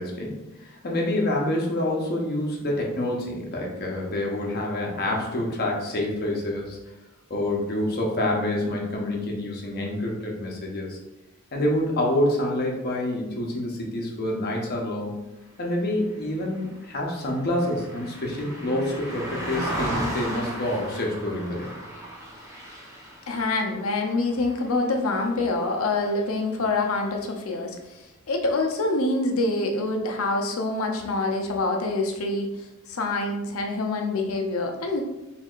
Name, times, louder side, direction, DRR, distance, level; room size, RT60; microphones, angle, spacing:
voice 1, 0.0-6.8 7.3-11.0 11.5-15.2 15.6-21.7, left 1 dB, 50° left, -1 dB, 0.8 m, -27 dB
Car passing by, 16.1-25.7 26.0-26.3, equal, 15° right, 0.9 m, -36 dB
voice 2, 23.3-27.8 28.3-32.5 32.9-35.0, left 2 dB, 75° left, 3 dB, 0.6 m, -26 dB
4.5 x 3.4 x 2.4 m, 0.99 s
head